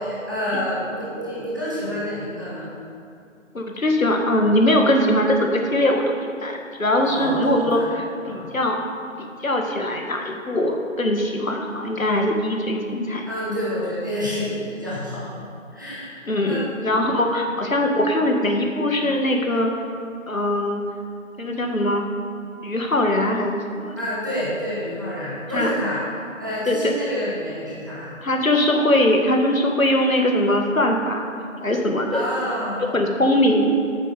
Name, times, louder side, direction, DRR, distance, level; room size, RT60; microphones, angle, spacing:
voice 1, 0.0-2.7 7.0-7.8 8.2-8.5 12.0-12.2 13.2-15.3 15.7-16.7 17.0-17.3 24.0-26.0 26.4-28.1 32.1-32.9, equal, 15° right, -9 dB, 1.3 m, -28 dB
voice 2, 3.5-6.2 6.4-8.8 9.2-13.3 16.3-19.7 20.3-20.8 21.4-22.0 22.6-24.0 25.5-25.7 26.7-26.9 28.2-31.3 31.6-32.2 32.9-33.8, left 1 dB, 80° left, 2 dB, 1.7 m, -21 dB
9.2 x 7.1 x 6.5 m, 2.5 s
figure-of-eight pair, 175°, 40 cm